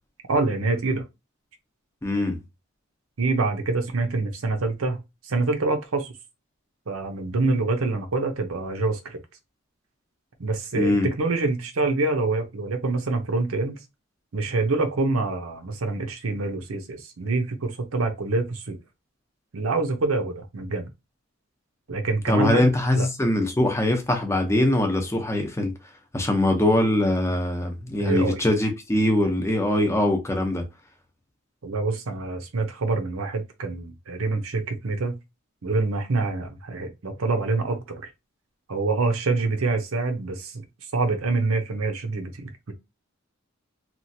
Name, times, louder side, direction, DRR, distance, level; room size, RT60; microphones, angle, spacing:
voice 1, 0.3-1.0 3.2-6.1 6.9-9.2 10.4-13.8 14.3-18.8 19.5-20.9 21.9-22.7 22.9-23.1 28.0-28.4 31.6-35.2 35.6-38.1 38.7-40.6 40.9-42.7, right 3 dB, 90° right, 0.7 m, -26 dB
voice 2, 2.0-2.4 10.7-11.1 22.3-25.7 26.1-30.6, left 1 dB, 15° left, 0.6 m, -22 dB
3.0 x 2.3 x 2.7 m
head